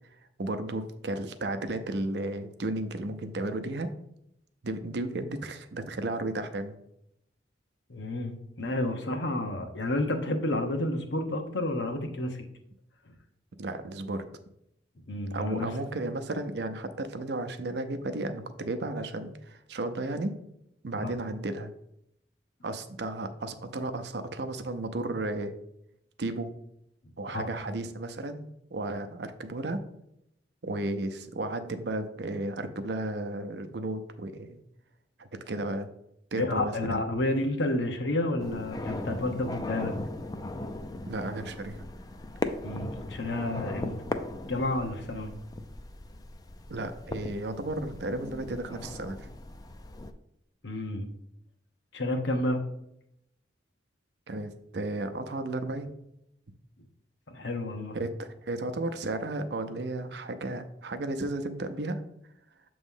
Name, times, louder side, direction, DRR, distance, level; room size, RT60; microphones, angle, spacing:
voice 1, 0.4-3.9 4.6-6.7 13.6-14.2 15.3-20.4 20.8-21.7 22.6-25.5 26.2-26.5 27.2-29.8 30.6-34.6 35.2-35.9 36.3-37.0 41.1-41.9 46.7-49.3 54.3-55.9 57.9-62.0, right 2 dB, 65° right, 9 dB, 0.6 m, -34 dB
voice 2, 7.9-12.4 15.1-15.7 21.0-21.1 27.3-27.5 36.3-39.9 42.6-43.9 44.5-45.3 50.6-51.1 51.9-52.6 57.3-58.0, left 1 dB, 75° left, 5 dB, 0.9 m, -30 dB
sound 1, 38.4-50.1, left 2 dB, 20° left, 0.4 m, -38 dB
7.1 x 3.1 x 5.4 m, 0.79 s
head